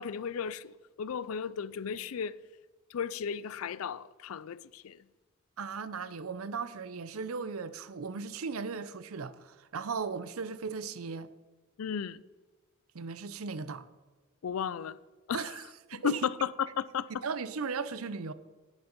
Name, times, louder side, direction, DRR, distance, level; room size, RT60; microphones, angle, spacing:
voice 1, 0.0-2.4 2.9-5.1 11.8-12.2 14.4-15.0 15.3-15.5 15.9-17.2, left 7 dB, 80° left, 0.4 m, -34 dB
voice 2, 5.6-11.3 12.9-13.9 15.3-15.6 15.9-16.2 17.2-18.3, right 5 dB, 90° right, 0.6 m, -37 dB
10.5 x 9.7 x 5.2 m
head